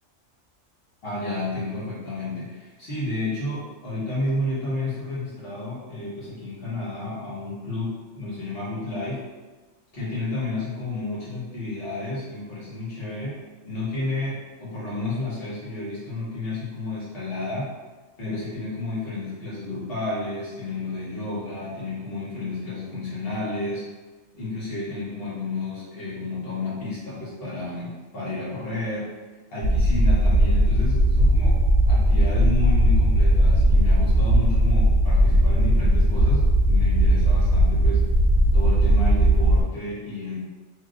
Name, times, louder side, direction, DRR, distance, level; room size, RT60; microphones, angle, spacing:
voice 1, 1.0-9.2 9.9-13.4 13.6-17.7 18.2-23.8 24.3-29.1 29.5-38.0 38.5-40.4, left 2 dB, 50° left, -8 dB, 1.4 m, -31 dB
sound 1, 29.6-39.6, right 1 dB, 50° right, 0.6 m, -18 dB
3.1 x 2.8 x 2.5 m, 1.3 s
omnidirectional pair, 1.3 m